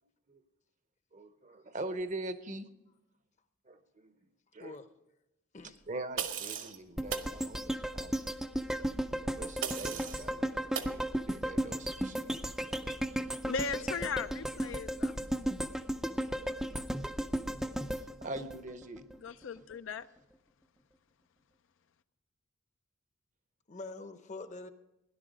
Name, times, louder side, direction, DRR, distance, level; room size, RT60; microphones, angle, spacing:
voice 1, 1.1-2.7 3.6-4.1 4.5-4.8 5.6-8.2 9.3-10.5 10.8-12.4 17.9-19.0, right 2 dB, 35° right, 10 dB, 0.7 m, -43 dB
sound 1, 6.2-6.8 7.1-7.3 9.6-10.2 10.7-11.0, right 7 dB, 60° right, 1.1 m, -37 dB
sound 2, 7.0-19.2 19.6-19.7, equal, ahead, 0.4 m, -35 dB
voice 2, 13.4-15.2 19.2-20.1, left 5 dB, 60° left, 12 dB, 0.4 m, -37 dB
voice 3, 23.7-24.7, left 3 dB, 30° left, 10 dB, 0.8 m, -45 dB
17.0 x 11.0 x 5.1 m, 0.91 s
head